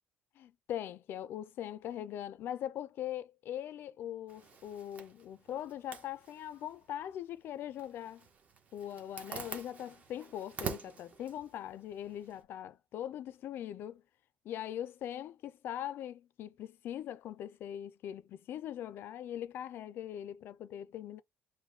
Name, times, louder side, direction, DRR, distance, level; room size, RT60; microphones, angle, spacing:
voice 1, 0.4-8.3 8.7-14.0 14.4-21.2, left 11 dB, 55° left, 0.5 m, -41 dB
Zipper (clothing), 4.3-12.4, right 5 dB, 35° right, 1.1 m, -47 dB
4.8 x 2.2 x 3.6 m
cardioid pair, 160°, 4 cm